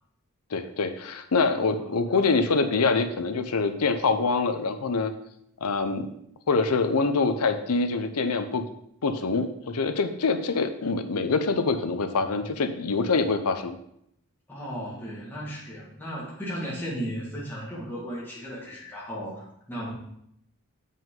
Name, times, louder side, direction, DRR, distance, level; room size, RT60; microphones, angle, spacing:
voice 1, 0.5-5.1 5.6-6.1 6.5-8.6 9.0-13.8, left 4 dB, 90° left, 9 dB, 0.7 m, -25 dB
voice 2, 1.5-2.0 14.5-19.9, equal, 10° left, -6 dB, 1.8 m, -36 dB
7.4 x 5.3 x 3.8 m, 0.74 s
head